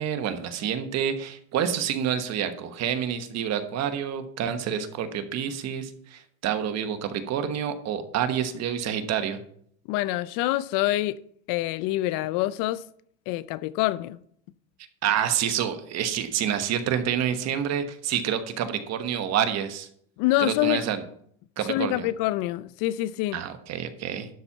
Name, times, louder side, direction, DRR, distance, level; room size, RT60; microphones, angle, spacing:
voice 1, 0.0-9.4 15.0-19.9 20.4-21.0 21.6-22.1 23.3-24.3, right 9 dB, 45° right, 1.3 m, -28 dB
voice 2, 9.9-11.2 11.5-12.8 13.3-14.2 20.2-20.8 21.7-23.4, left 16 dB, 65° left, 0.6 m, -26 dB
12.0 x 4.4 x 7.2 m
cardioid pair, 130°, 36 cm